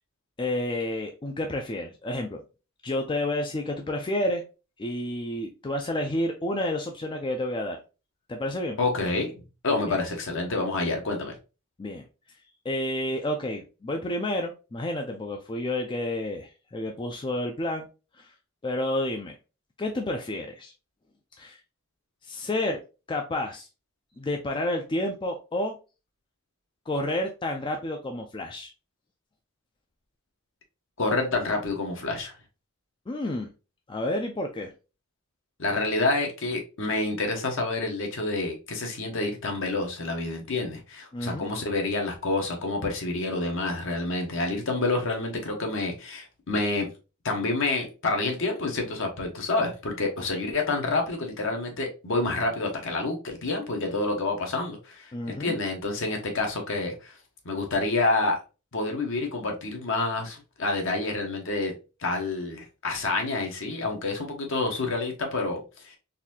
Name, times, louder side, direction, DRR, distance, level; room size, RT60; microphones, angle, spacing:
voice 1, 0.4-2.4 2.8-4.4 4.8-7.8 8.3-8.8 9.9-10.0 11.8-12.0 12.7-17.9 18.2-18.3 18.6-19.3 19.8-20.7 21.4-21.6 22.2-22.8 23.1-23.7 24.2-25.7 26.9-28.7 33.1-33.5 33.9-34.7 41.1-41.5 55.1-55.5, left 1 dB, 20° left, 0.4 m, -30 dB
voice 2, 8.8-9.3 9.6-11.3 31.0-32.3 35.6-46.9 47.2-57.2 57.4-58.4 58.7-61.7 62.0-66.0, left 2 dB, 60° left, 1.0 m, -28 dB
4.0 x 2.6 x 2.7 m
head